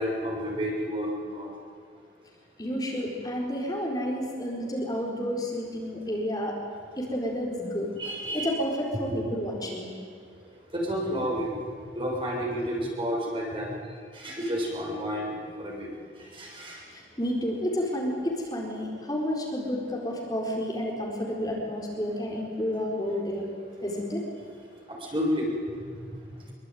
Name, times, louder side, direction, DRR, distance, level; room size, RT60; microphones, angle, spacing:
voice 1, 0.0-1.5 8.0-8.6 9.1-9.3 10.7-11.5 11.9-13.7 14.2-15.3 15.6-15.9 16.4-16.8 25.1-25.5, equal, 30° right, -2 dB, 6.5 m, -30 dB
voice 2, 2.6-6.5 7.0-7.9 8.3-9.9 16.9-23.5 23.8-24.2, equal, 20° left, -2 dB, 4.4 m, -30 dB
25.5 x 23.5 x 9.5 m, 2.1 s
head